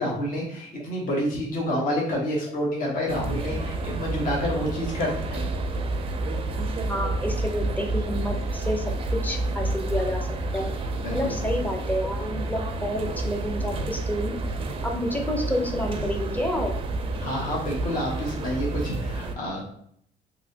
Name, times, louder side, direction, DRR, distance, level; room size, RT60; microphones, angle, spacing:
voice 1, 0.0-5.5 11.0-11.3 17.2-19.6, equal, 55° left, -3 dB, 1.1 m, -28 dB
sound 1, 3.1-19.4, right 2 dB, 35° right, 0.4 m, -29 dB
voice 2, 6.9-8.8 9.2-10.3 10.5-10.7 11.1-14.3 14.8-16.8, equal, 10° left, 2 dB, 0.6 m, -29 dB
3.1 x 2.7 x 2.7 m, 0.66 s
cardioid pair, 110°, 17 cm